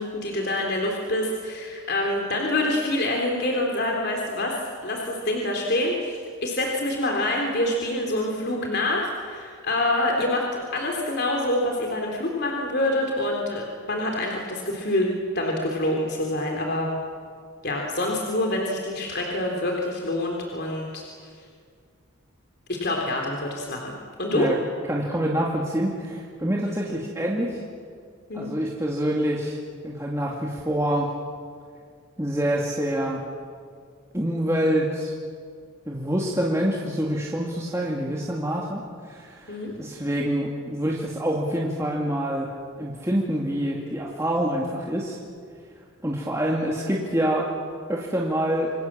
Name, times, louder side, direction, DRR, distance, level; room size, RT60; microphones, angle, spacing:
voice 1, 0.0-16.9 17.6-21.3 22.7-23.9 24.2-24.5 28.3-28.5 39.5-39.7, left 1 dB, 50° left, 0 dB, 3.4 m, -26 dB
voice 2, 24.9-27.6 28.3-31.1 32.2-33.2 34.1-35.1 35.9-42.5 42.8-45.2 46.0-47.5 47.9-48.7, equal, 15° right, -3 dB, 2.3 m, -26 dB
27.5 x 25.5 x 7.5 m, 2.1 s
head